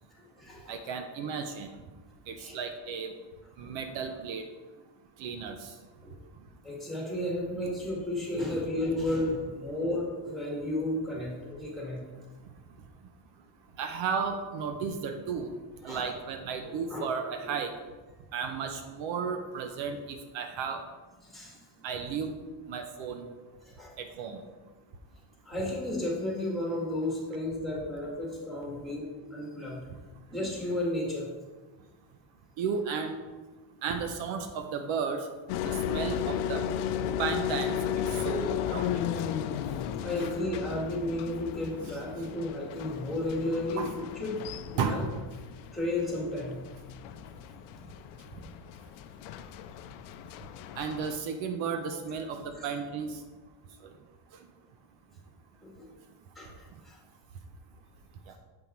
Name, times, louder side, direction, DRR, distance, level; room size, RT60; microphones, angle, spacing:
voice 1, 0.1-0.8 2.4-2.5 6.0-6.2 6.6-12.0 15.8-16.1 16.6-17.1 17.4-17.5 21.2-21.6 23.6-23.9 25.5-29.9 30.3-31.3 40.0-44.4 44.7-45.0 45.7-46.6 47.8-47.9 52.6-52.7 55.6-55.9 56.4-57.0, left 1 dB, ahead, -4 dB, 2.0 m, -33 dB
voice 2, 0.7-1.7 2.3-3.1 3.6-4.4 5.2-5.7 13.8-15.5 15.8-17.7 18.3-20.8 21.8-22.4 22.7-23.3 24.0-24.4 32.6-33.2 33.8-35.3 35.6-36.6 37.2-37.8 38.1-39.3 43.8-43.9 44.8-45.1 50.8-53.2 53.8-53.9, right 6 dB, 70° right, 6 dB, 0.8 m, -33 dB
sound 1, 35.5-51.2, left 9 dB, 85° left, 0.6 m, -35 dB
7.8 x 5.4 x 4.5 m, 1.3 s
cardioid pair, 150°, 48 cm